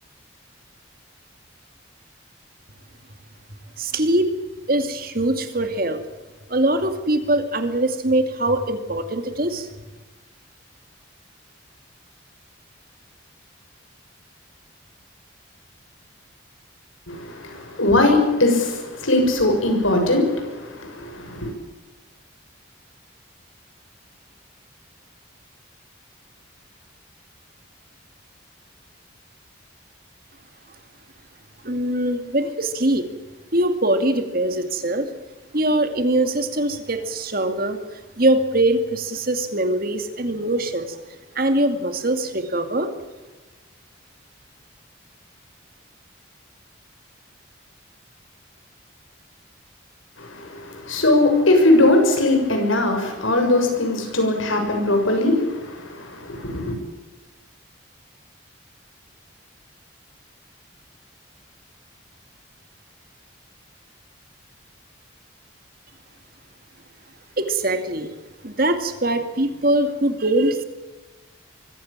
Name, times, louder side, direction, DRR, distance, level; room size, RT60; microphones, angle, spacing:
voice 1, 3.8-4.3 4.7-6.0 6.5-9.7 31.6-33.1 33.5-35.1 35.5-37.8 38.2-41.0 41.3-42.9 67.4-68.1 68.4-70.6, right 1 dB, 45° right, 8 dB, 2.3 m, -22 dB
voice 2, 17.1-21.5 50.2-56.7, left 2 dB, 85° left, 3 dB, 6.8 m, -20 dB
24.0 x 15.5 x 8.9 m, 1.2 s
head